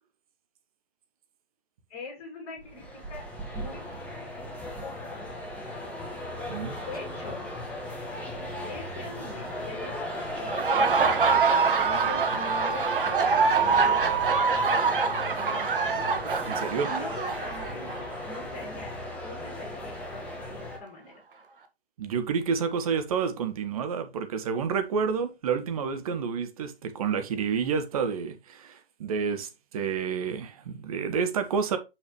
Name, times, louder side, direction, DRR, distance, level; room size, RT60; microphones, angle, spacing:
voice 1, 1.9-3.2 3.5-3.8 4.8-5.8 6.9-7.5 8.7-14.0 14.3-16.0 16.9-19.0 19.2-21.2, left 2 dB, 25° left, 2.6 m, -43 dB
jf Resonant Space, 2.6-20.8, left 1 dB, 5° left, 1.3 m, -37 dB
Laughter, 10.4-18.0, right 5 dB, 55° right, 1.5 m, -24 dB
voice 2, 16.4-16.9 22.0-31.8, right 6 dB, 35° right, 1.3 m, -29 dB
6.3 x 6.0 x 3.1 m
figure-of-eight pair, 135°, 31 cm